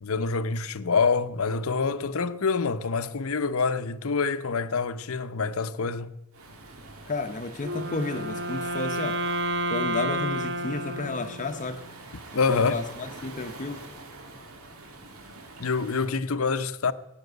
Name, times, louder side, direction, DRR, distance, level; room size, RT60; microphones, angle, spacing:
voice 1, 0.0-6.1 12.3-12.8 15.6-16.9, left 4 dB, 75° left, 0.8 m, -26 dB
Waves surf, 6.3-16.1, right 2 dB, 80° right, 3.1 m, -45 dB
voice 2, 7.1-9.2 9.7-11.8 12.5-13.8, left 3 dB, 35° left, 0.8 m, -32 dB
Wind instrument woodwind instrument, 7.6-11.8, right 1 dB, 55° right, 1.1 m, -30 dB
17.0 x 8.9 x 8.0 m
head